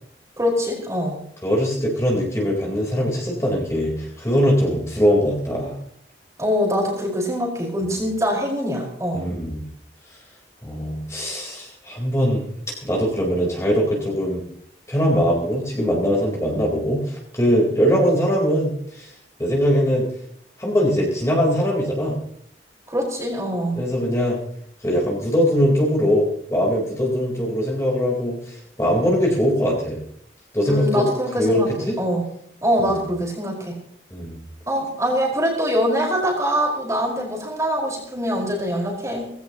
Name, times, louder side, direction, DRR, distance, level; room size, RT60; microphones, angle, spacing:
voice 1, 0.4-1.2 6.4-9.2 22.9-23.8 30.7-32.2 32.6-33.7 34.7-39.3, equal, 20° right, -1 dB, 5.1 m, -23 dB
voice 2, 1.4-5.8 9.1-9.7 10.6-12.5 12.8-14.4 14.9-19.1 19.4-20.1 20.6-22.2 23.7-24.4 24.8-30.0 30.5-31.1 31.4-32.0 32.9-33.1 34.1-34.4, equal, 15° left, -2 dB, 4.2 m, -21 dB
19.5 x 16.5 x 3.0 m, 0.68 s
head